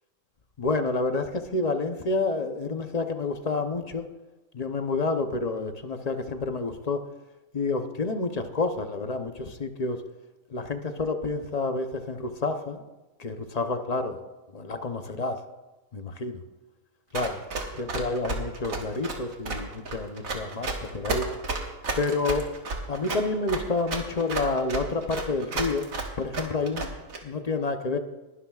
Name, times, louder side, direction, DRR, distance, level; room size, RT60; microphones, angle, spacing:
voice 1, 0.6-4.0 4.5-7.1 7.5-10.0 10.5-12.8 13.2-14.2 14.5-15.4 15.9-16.4 17.1-17.4 17.7-21.3 22.0-22.5 22.9-25.8 26.2-26.9 27.2-28.0, left 3 dB, 40° left, 7 dB, 0.6 m, -29 dB
Run, 17.1-27.2, right 3 dB, 75° right, 2.0 m, -32 dB
21.0 x 12.0 x 2.4 m, 1.1 s
omnidirectional pair, 1.5 m